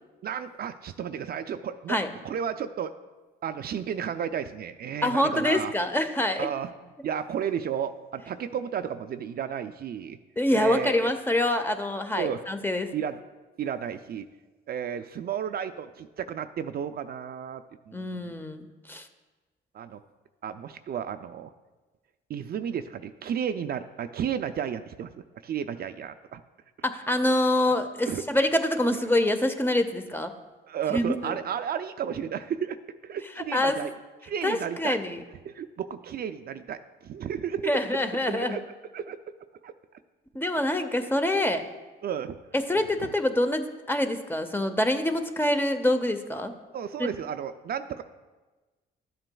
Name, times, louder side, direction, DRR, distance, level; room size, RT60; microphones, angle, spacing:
voice 1, 0.2-2.0 2.2-2.9 3.4-5.7 6.4-6.7 7.0-10.2 10.5-11.1 12.2-12.4 12.9-13.2 13.6-14.2 14.7-18.3 19.7-20.0 20.4-21.5 22.3-25.1 25.4-26.4 28.0-28.2 30.7-32.8 33.0-33.9 34.2-35.0 35.5-37.8 38.3-38.6 38.9-39.2 39.6-39.7 42.0-42.4 43.0-43.1 46.7-48.0, right 8 dB, 50° right, 10 dB, 0.4 m, -33 dB
voice 2, 5.0-6.5 10.4-12.9 17.9-19.1 26.8-30.3 30.9-31.4 33.4-33.8 34.4-35.2 37.6-38.6 40.3-41.6 42.5-46.5 47.0-47.1, left 1 dB, 10° left, 8 dB, 0.7 m, -26 dB
12.5 x 7.7 x 2.3 m, 1.2 s
cardioid pair, 90°, 20 cm